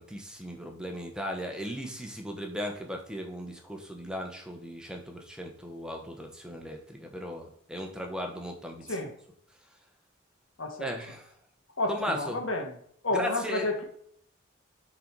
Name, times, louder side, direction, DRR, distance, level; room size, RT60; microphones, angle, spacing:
voice 1, 0.0-8.8 10.8-11.3 11.9-12.4 13.1-13.7, equal, 5° right, 2 dB, 0.9 m, -37 dB
voice 2, 10.6-11.0 11.8-12.8 13.0-13.8, left 2 dB, 70° left, 4 dB, 1.3 m, -30 dB
6.8 x 4.0 x 4.6 m, 0.65 s
head